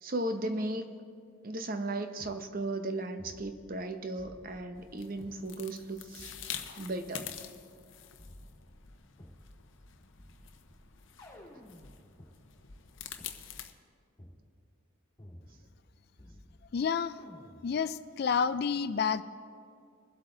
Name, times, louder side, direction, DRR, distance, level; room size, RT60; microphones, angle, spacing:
voice 1, 0.0-0.9 1.4-7.4, right 2 dB, 45° right, 8 dB, 0.8 m, -36 dB
sound 1, 2.2-2.4 3.2-3.9 4.2-5.4 6.2-7.4 8.2-9.4 10.2-12.3 13.2-13.3 14.2-14.4 15.2-15.9 16.2-16.8 17.2-17.8, left 1 dB, 20° left, 2.2 m, -54 dB
sound 2, 4.7-13.7, left 9 dB, 65° left, 0.7 m, -46 dB
voice 2, 16.7-17.2 17.6-19.2, left 6 dB, 50° left, 14 dB, 0.3 m, -29 dB
22.0 x 8.0 x 3.9 m, 2.3 s
head